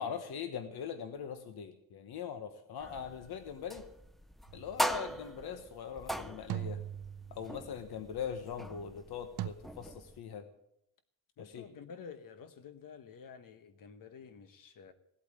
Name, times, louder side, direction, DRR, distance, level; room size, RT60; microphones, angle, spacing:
voice 1, 0.0-3.9 4.5-6.8 7.3-10.5 11.4-11.7, left 7 dB, 85° left, 9 dB, 1.3 m, -41 dB
sound 1, 2.8-10.2, equal, ahead, 0.5 m, -41 dB
sound 2, 4.5-4.9 6.5-7.7 9.4-9.5, right 12 dB, 90° right, 0.7 m, -40 dB
voice 2, 11.4-14.9, left 6 dB, 60° left, 10 dB, 1.2 m, -50 dB
17.0 x 8.6 x 7.5 m, 0.74 s
wide cardioid pair, 180°, 37 cm